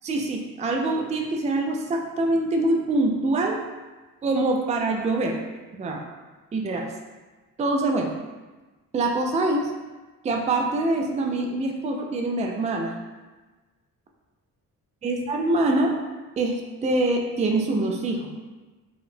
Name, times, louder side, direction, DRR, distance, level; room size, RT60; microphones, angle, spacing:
voice 1, 0.0-3.6 4.2-5.5 5.8-6.0 6.5-6.9 7.6-8.1 8.9-9.7 10.2-12.9 15.0-16.0 16.4-18.3, right 2 dB, 20° right, 2 dB, 0.3 m, -24 dB
4.6 x 2.1 x 3.2 m, 1.2 s
cardioid pair, 130°, 35 cm